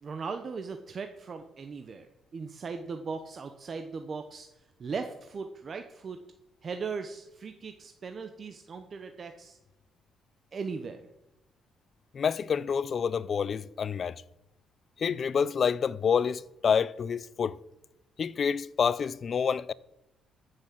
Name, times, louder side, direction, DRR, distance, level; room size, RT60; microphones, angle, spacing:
voice 1, 0.0-6.2 6.6-9.6 10.5-11.1, right 5 dB, 45° right, 1.0 m, -38 dB
voice 2, 12.1-14.2 15.0-17.6 18.2-19.7, left 6 dB, 50° left, 0.5 m, -28 dB
14.0 x 6.4 x 7.5 m
cardioid pair, 90°, 0 cm